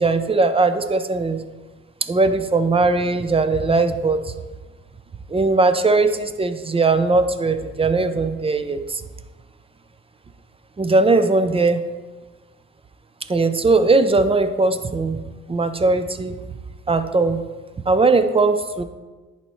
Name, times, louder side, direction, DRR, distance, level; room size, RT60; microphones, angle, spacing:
voice 1, 0.0-1.4 2.0-4.3 5.3-9.0 10.8-11.8 13.3-15.2 15.5-16.4 16.9-17.4 17.9-18.8, right 3 dB, 20° right, 9 dB, 0.5 m, -19 dB
10.5 x 4.2 x 3.1 m, 1.3 s
cardioid pair, 90°, 30 cm